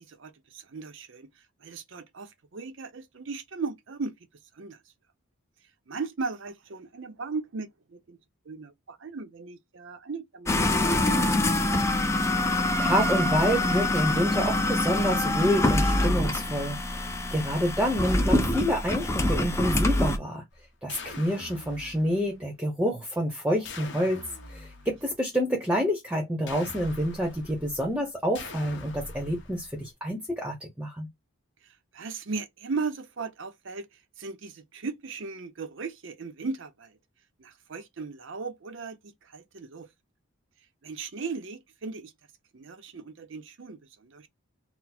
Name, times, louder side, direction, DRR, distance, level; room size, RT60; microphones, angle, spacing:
voice 1, 0.0-4.2 4.5-4.8 5.9-8.2 8.5-11.4 31.6-37.0 37.4-39.9 40.8-42.1 42.5-44.3, right 4 dB, 60° right, 0.6 m, -37 dB
sound 1, 10.5-20.2, left 2 dB, 15° left, 0.4 m, -25 dB
voice 2, 12.3-20.4 20.8-24.2 24.5-31.1, equal, 5° right, 0.8 m, -28 dB
sound 2, 20.5-22.5 23.6-25.2 26.5-27.9 28.3-29.9, left 3 dB, 55° left, 1.0 m, -43 dB
4.0 x 2.1 x 4.2 m
head